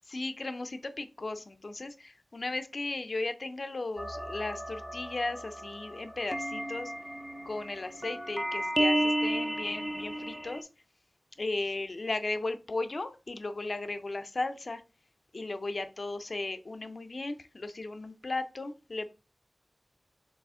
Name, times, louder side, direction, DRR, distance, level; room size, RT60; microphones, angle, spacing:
voice 1, 0.1-6.9 7.5-10.7 11.4-14.8 15.3-19.1, left 2 dB, 55° left, 9 dB, 0.5 m, -36 dB
sound 1, 4.0-10.6, equal, 10° right, 0.4 m, -33 dB
4.1 x 3.0 x 3.6 m, 0.32 s
wide cardioid pair, 85°, 0 cm